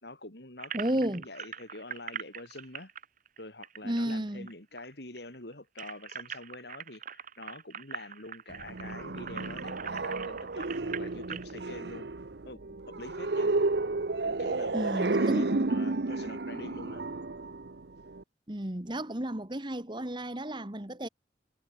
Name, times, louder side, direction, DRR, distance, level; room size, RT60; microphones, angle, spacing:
voice 1, 0.0-2.9 3.4-12.1 12.4-13.5 14.2-17.0, left 2 dB, 60° left, 4.8 m, -46 dB
sound 1, 0.6-4.5 4.8-4.9 5.2-11.5, right 8 dB, 45° right, 1.5 m, -42 dB
voice 2, 0.7-1.2 3.8-4.5 14.7-15.6 18.5-21.1, right 1 dB, 25° right, 1.7 m, -32 dB
sound 2, 8.5-18.2, right 3 dB, 65° right, 0.9 m, -32 dB
head